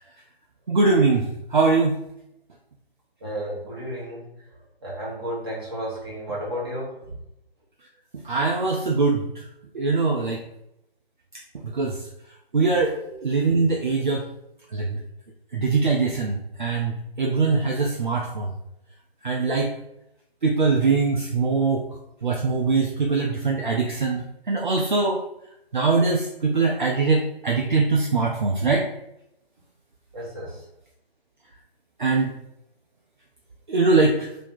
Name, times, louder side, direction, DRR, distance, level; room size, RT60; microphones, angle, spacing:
voice 1, 0.7-1.2 1.5-2.0 8.2-9.2 9.7-10.4 11.6-12.0 12.5-14.2 14.7-15.0 15.5-18.5 19.2-19.7 20.4-21.8 22.2-25.2 25.7-28.9 32.0-32.3 33.7-34.3, right 4 dB, 50° right, 0 dB, 0.5 m, -22 dB
voice 2, 3.2-4.3 4.8-7.1 30.1-30.6, equal, 25° right, -6 dB, 1.2 m, -32 dB
3.2 x 2.7 x 4.1 m, 0.82 s
figure-of-eight pair, 160°, 31 cm